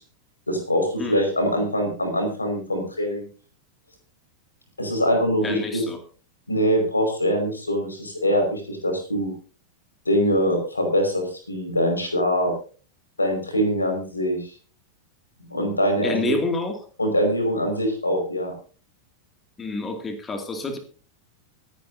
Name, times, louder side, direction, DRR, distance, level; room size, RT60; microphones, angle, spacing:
voice 1, 0.5-3.3 4.8-5.8 6.5-9.3 10.0-12.5 13.2-14.5 15.5-16.3 17.0-18.5, equal, 80° left, 4 dB, 5.1 m, -23 dB
voice 2, 5.4-6.0 16.0-16.8 19.6-20.8, left 3 dB, 15° left, 5 dB, 2.3 m, -28 dB
25.0 x 10.0 x 2.7 m, 0.39 s
figure-of-eight pair, 90°, 0 cm